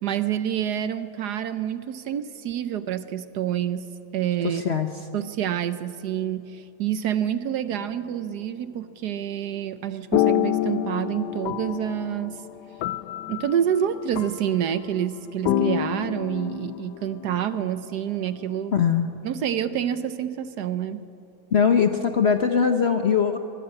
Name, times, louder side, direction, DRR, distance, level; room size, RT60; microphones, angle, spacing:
voice 1, 0.0-3.9 4.1-4.6 5.1-12.4 13.3-18.8 19.2-21.0, right 10 dB, 65° right, 12 dB, 1.2 m, -27 dB
voice 2, 4.4-4.9 18.7-19.1 21.5-23.4, left 6 dB, 50° left, 7 dB, 0.8 m, -21 dB
sound 1, 7.7-8.2 10.1-15.0 15.4-17.7, left 11 dB, 70° left, 1.2 m, -28 dB
23.0 x 15.5 x 8.9 m, 2.8 s
omnidirectional pair, 2.0 m